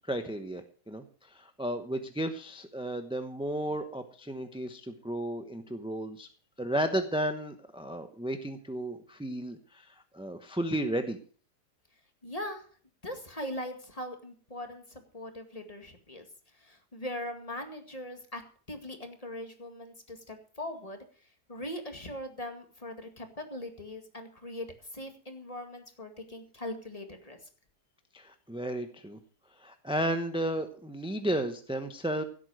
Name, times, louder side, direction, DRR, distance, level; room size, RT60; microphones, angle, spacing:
voice 1, 0.1-6.3 6.6-11.2 28.1-29.2 29.6-32.2, right 1 dB, 5° right, 7 dB, 0.6 m, -33 dB
voice 2, 12.2-12.7 13.0-16.3 16.5-18.4 18.7-27.5, left 1 dB, 20° left, 5 dB, 2.1 m, -41 dB
16.0 x 8.4 x 6.3 m, 0.42 s
omnidirectional pair, 1.8 m